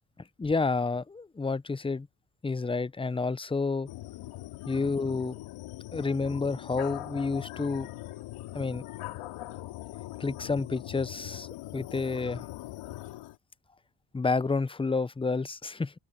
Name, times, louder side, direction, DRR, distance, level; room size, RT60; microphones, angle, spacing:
voice 1, 0.4-2.1 2.4-3.9 4.7-5.3 5.9-7.9 8.5-8.8 10.2-11.5 11.7-12.4 14.1-15.9, left 4 dB, 10° left, 0.5 m, -29 dB
sound 1, 3.9-13.4, left 15 dB, 85° left, 3.0 m, -41 dB
open air
supercardioid pair, 65°, 49 cm